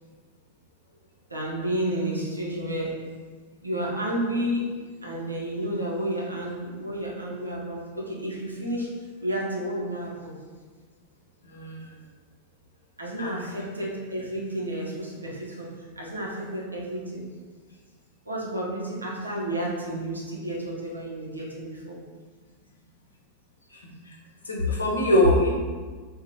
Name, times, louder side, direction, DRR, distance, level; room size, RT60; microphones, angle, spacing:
voice 1, 1.3-3.0 3.6-4.6 5.0-8.9 9.2-10.3 13.0-17.2 18.2-22.0, right 1 dB, 80° right, -3 dB, 0.7 m, -31 dB
voice 2, 11.4-11.9 13.2-13.4 23.7-24.2 24.4-25.5, left 1 dB, 80° left, -3 dB, 0.7 m, -23 dB
2.9 x 2.3 x 4.0 m, 1.4 s
figure-of-eight pair, 90°, 0 cm